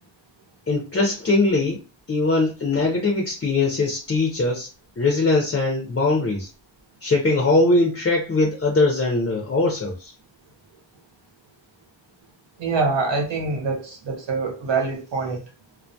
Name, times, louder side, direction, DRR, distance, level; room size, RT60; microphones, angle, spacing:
voice 1, 0.7-1.8 2.1-4.7 5.0-6.5 7.0-10.1, left 2 dB, 30° left, 0.5 m, -21 dB
voice 2, 12.6-15.4, right 4 dB, 65° right, 0.8 m, -25 dB
2.2 x 2.1 x 2.6 m
wide cardioid pair, 85°, 46 cm